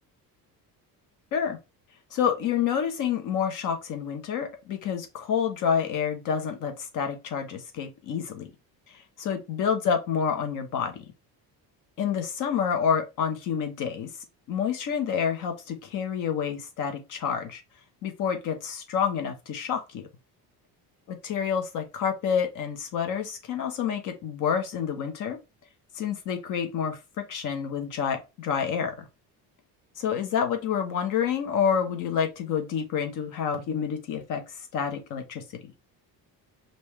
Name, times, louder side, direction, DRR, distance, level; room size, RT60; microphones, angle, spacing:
voice 1, 2.1-8.5 9.2-11.0 12.0-14.1 14.5-17.6 18.0-20.1 21.2-25.4 25.9-27.0 27.3-29.0 30.0-35.4, left 7 dB, 55° left, 1.2 m, -28 dB
5.3 x 2.8 x 3.2 m
cardioid pair, 180°, 38 cm